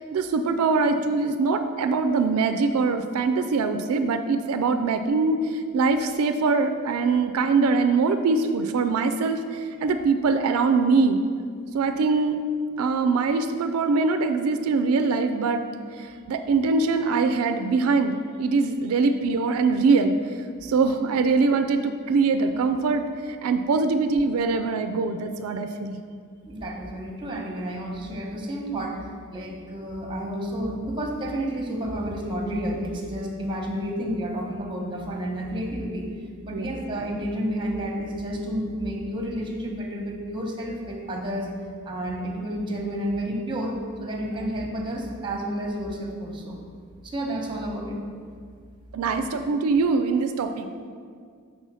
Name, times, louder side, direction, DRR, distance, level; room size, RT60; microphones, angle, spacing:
voice 1, 0.0-11.2 11.7-12.4 12.8-15.6 16.0-20.2 20.6-23.0 23.4-26.0 36.5-36.7 48.9-50.9, right 4 dB, 80° right, 7 dB, 0.4 m, -23 dB
voice 2, 26.5-29.0 29.3-36.1 36.4-41.5 41.8-43.7 44.0-46.6 47.0-48.0 50.5-50.6, right 1 dB, 20° right, 1 dB, 0.9 m, -30 dB
5.5 x 4.3 x 6.1 m, 2.1 s
head